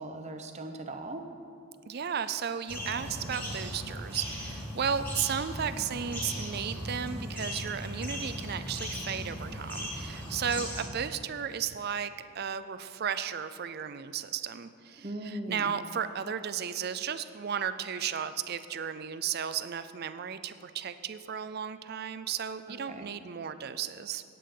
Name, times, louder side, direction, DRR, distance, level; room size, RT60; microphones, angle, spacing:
voice 1, 0.0-1.3 10.6-10.9 15.0-15.8 22.7-23.1, right 1 dB, 30° right, 5 dB, 0.8 m, -40 dB
voice 2, 1.9-15.0 15.5-24.2, right 7 dB, 50° right, 12 dB, 0.4 m, -34 dB
sound 1, 2.7-10.8, equal, 10° left, 2.2 m, -38 dB
18.0 x 8.3 x 3.8 m, 2.7 s
head